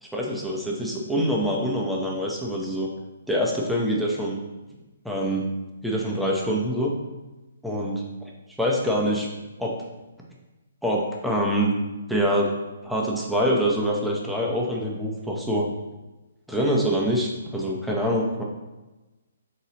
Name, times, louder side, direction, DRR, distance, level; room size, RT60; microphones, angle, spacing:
voice 1, 0.0-2.9 3.3-4.4 5.0-5.5 5.8-6.9 7.6-8.0 8.6-9.3 9.6-9.8 10.8-11.8 12.1-12.5 12.8-15.7 16.5-18.4, equal, ahead, -3 dB, 0.7 m, -25 dB
4.2 x 3.9 x 2.8 m, 1.1 s
figure-of-eight pair, 135°, 0 cm